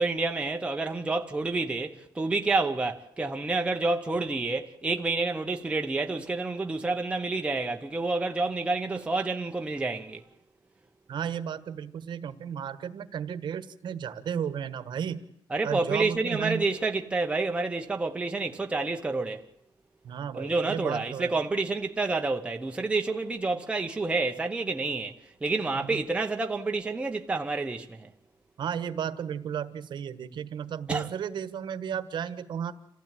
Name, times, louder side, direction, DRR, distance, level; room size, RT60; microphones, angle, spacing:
voice 1, 0.0-10.2 15.5-19.4 20.3-28.1 30.9-31.1, right 3 dB, 10° right, 0.9 m, -29 dB
voice 2, 11.1-15.2 15.6-16.7 20.0-21.4 25.8-26.1 28.6-32.7, right 8 dB, 55° right, 1.3 m, -34 dB
27.5 x 15.0 x 9.0 m
wide cardioid pair, 180°, 9 cm